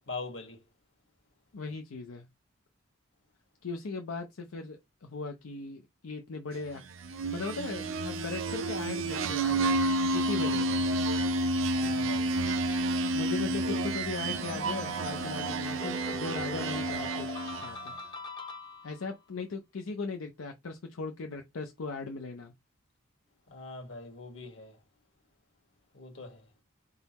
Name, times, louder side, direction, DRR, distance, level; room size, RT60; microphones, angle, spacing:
voice 1, 0.1-0.6 11.7-12.3 13.7-13.8 23.5-24.7 25.9-26.4, left 3 dB, 65° left, 1.5 m, -42 dB
voice 2, 1.5-2.3 3.6-6.8 7.3-9.8 10.1-10.8 13.1-17.3 17.6-17.9 18.8-22.5, left 4 dB, 85° left, 0.6 m, -38 dB
sound 1, 7.0-17.8, right 2 dB, 70° right, 0.6 m, -30 dB
sound 2, 14.2-19.2, left 3 dB, 20° left, 0.6 m, -42 dB
4.1 x 3.8 x 2.9 m
head